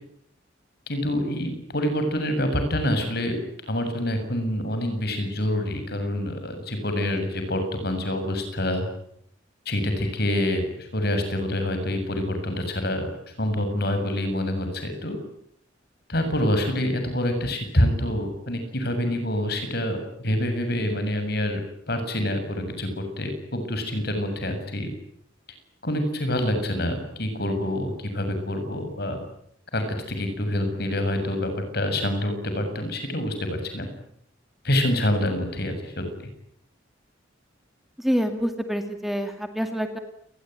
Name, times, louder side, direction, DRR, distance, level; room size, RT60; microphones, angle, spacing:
voice 1, 0.9-3.4 3.7-8.9 9.7-13.1 13.4-15.2 16.1-21.6 21.9-24.9 25.8-29.2 29.7-33.9 34.6-36.3, left 1 dB, 55° left, 7 dB, 7.5 m, -26 dB
voice 2, 38.0-40.0, equal, ahead, 6 dB, 2.2 m, -26 dB
29.0 x 21.0 x 9.2 m, 0.70 s
head